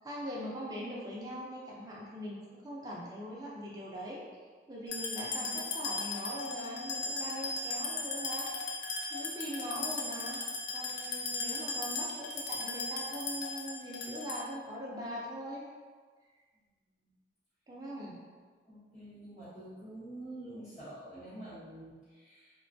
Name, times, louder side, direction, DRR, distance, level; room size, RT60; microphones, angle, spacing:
voice 1, 0.0-4.2 4.7-8.5 9.1-10.4 10.7-15.6 17.7-18.2, equal, 20° right, -5 dB, 0.4 m, -41 dB
sound 1, 4.9-14.6, left 3 dB, 80° left, 0.4 m, -37 dB
voice 2, 18.7-22.5, right 1 dB, 45° left, -13 dB, 0.9 m, -47 dB
3.1 x 2.2 x 2.6 m, 1.5 s
head